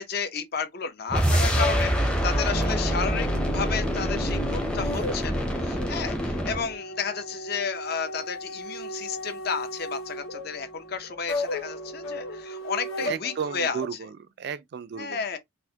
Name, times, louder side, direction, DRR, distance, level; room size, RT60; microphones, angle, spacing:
voice 1, 0.0-13.8 15.0-15.4, left 6 dB, 50° left, 0.6 m, -32 dB
sound 1, 1.1-6.7, equal, 5° left, 0.6 m, -26 dB
sound 2, 1.5-13.9, left 1 dB, 80° left, 0.9 m, -36 dB
Piano, 2.5-10.9 11.4-12.4, left 1 dB, 25° left, 1.0 m, -42 dB
voice 2, 13.0-15.2, right 7 dB, 55° right, 0.3 m, -34 dB
4.1 x 2.1 x 2.7 m
head